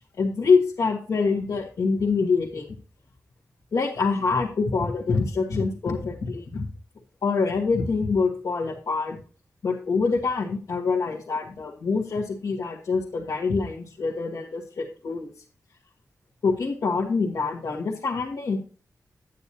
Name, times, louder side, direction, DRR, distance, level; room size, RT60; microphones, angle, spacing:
voice 1, 0.2-2.7 3.7-6.7 7.2-9.2 9.6-15.3 16.4-18.6, left 4 dB, 75° left, -3 dB, 1.6 m, -25 dB
9.7 x 9.3 x 2.9 m, 0.37 s
wide cardioid pair, 165°, 6 cm